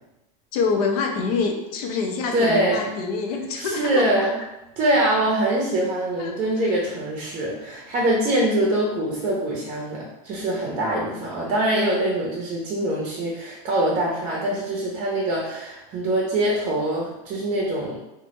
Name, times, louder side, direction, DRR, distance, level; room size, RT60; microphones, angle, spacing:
voice 1, 0.5-4.3 6.2-6.7, left 4 dB, 75° left, 3 dB, 0.5 m, -26 dB
voice 2, 2.3-2.9 3.6-4.3 4.8-18.0, right 1 dB, 40° right, -3 dB, 0.5 m, -24 dB
2.1 x 2.0 x 3.0 m, 0.94 s
supercardioid pair, 130°, 19 cm